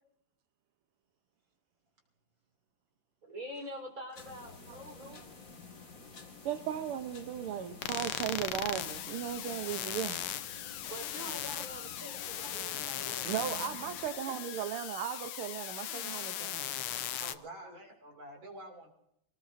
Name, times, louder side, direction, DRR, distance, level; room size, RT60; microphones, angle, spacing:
voice 1, 3.2-5.1 10.8-13.3 17.6-17.8, equal, 40° right, 4.6 m, -45 dB
sound 1, 4.1-14.1, left 4 dB, 40° left, 2.2 m, -50 dB
voice 2, 6.4-10.2 13.2-16.8, right 10 dB, 80° right, 1.8 m, -37 dB
sound 2, 7.8-17.4, left 11 dB, 80° left, 1.6 m, -38 dB
voice 3, 14.0-14.4 17.2-18.9, right 1 dB, 60° right, 3.3 m, -48 dB
25.0 x 18.5 x 2.6 m
omnidirectional pair, 2.4 m